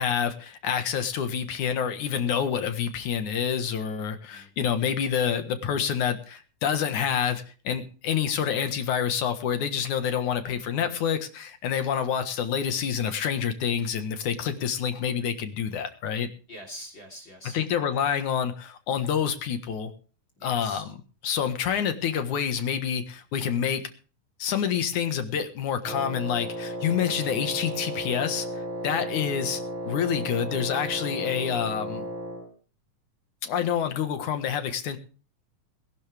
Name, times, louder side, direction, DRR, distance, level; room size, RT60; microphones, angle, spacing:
voice 1, 0.0-16.3 17.5-19.9 20.4-21.0 21.2-23.8 24.4-32.0 33.4-35.0, left 8 dB, 70° left, 8 dB, 2.9 m, -27 dB
voice 2, 4.3-4.9 16.5-17.6 20.4-20.8 28.9-29.1, equal, 35° left, 4 dB, 4.0 m, -45 dB
Wind instrument woodwind instrument, 25.8-32.5, right 1 dB, 60° right, 6.5 m, -34 dB
21.0 x 12.0 x 3.4 m, 0.36 s
omnidirectional pair, 3.7 m